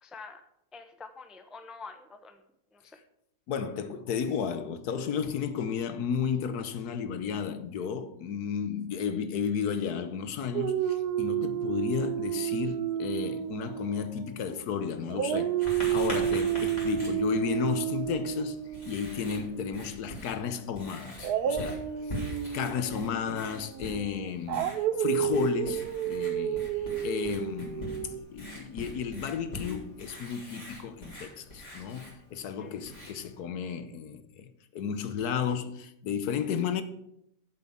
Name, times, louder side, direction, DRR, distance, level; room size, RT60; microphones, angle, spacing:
voice 1, 0.0-0.4 0.7-2.4 2.7-3.0 22.3-22.5 32.6-32.7, left 4 dB, ahead, 0.4 m, -47 dB
voice 2, 3.5-18.6 18.8-22.2 22.5-36.8, left 7 dB, 80° left, 1.4 m, -33 dB
Dog, 10.5-14.7 15.1-20.1 21.2-28.2, right 9 dB, 90° right, 1.2 m, -31 dB
Writing, 15.6-33.4, left 1 dB, 25° left, 3.8 m, -44 dB
7.9 x 7.5 x 7.2 m
omnidirectional pair, 1.6 m